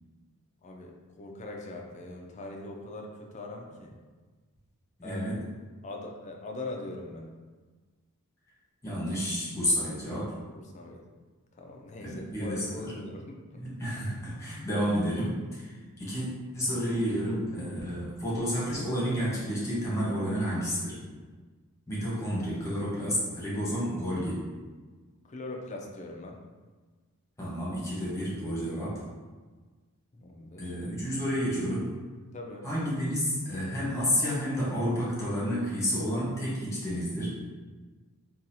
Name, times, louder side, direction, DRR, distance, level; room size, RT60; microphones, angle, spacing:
voice 1, 1.2-4.0 5.0-5.3 5.8-7.3 10.5-11.0 11.6-13.4 25.2-26.4 30.1-30.8 32.3-32.7, left 2 dB, 30° left, 1 dB, 0.4 m, -41 dB
voice 2, 5.0-5.4 8.8-10.3 12.0-12.9 13.5-16.3 16.5-21.0 21.9-24.4 27.4-29.0 30.6-31.9 32.6-37.3, equal, 15° left, -8 dB, 1.1 m, -30 dB
4.0 x 2.4 x 2.7 m, 1.4 s
head